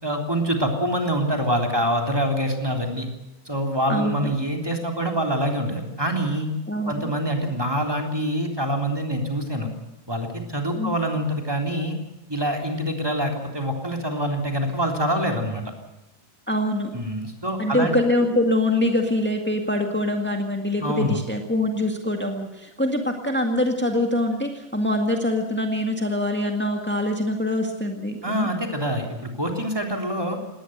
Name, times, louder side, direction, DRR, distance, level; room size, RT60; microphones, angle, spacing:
voice 1, 0.0-3.1 3.4-6.5 6.9-9.7 10.1-12.0 12.3-15.6 16.9-17.9 20.8-21.2 28.2-30.4, equal, 5° right, 2 dB, 3.2 m, -25 dB
voice 2, 3.9-4.3 6.7-7.1 10.7-11.0 16.5-16.9 17.6-28.5, left 1 dB, 10° left, 3 dB, 0.7 m, -24 dB
19.5 x 18.5 x 8.0 m, 0.99 s
omnidirectional pair, 3.7 m